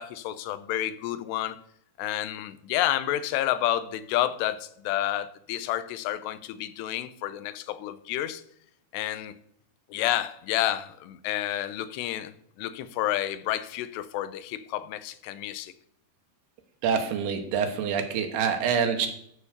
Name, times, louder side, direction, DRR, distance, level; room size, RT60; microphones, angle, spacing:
voice 1, 0.0-1.6 2.0-8.4 8.9-9.3 9.9-15.7, left 13 dB, 80° left, 2.7 m, -30 dB
voice 2, 16.8-19.1, right 7 dB, 70° right, 3.1 m, -26 dB
13.5 x 4.8 x 6.6 m
omnidirectional pair, 5.0 m